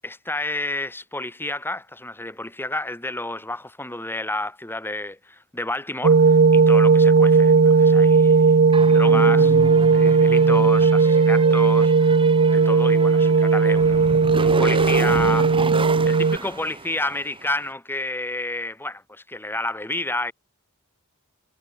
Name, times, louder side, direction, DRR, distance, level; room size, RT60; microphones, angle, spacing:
voice 1, 0.0-8.6 8.9-9.5 9.9-15.7 16.0-20.3, left 2 dB, 10° left, 2.9 m, -30 dB
sound 1, 6.0-16.4, right 4 dB, 45° right, 0.6 m, -16 dB
sound 2, 8.7-17.4, right 2 dB, 25° right, 1.7 m, -32 dB
head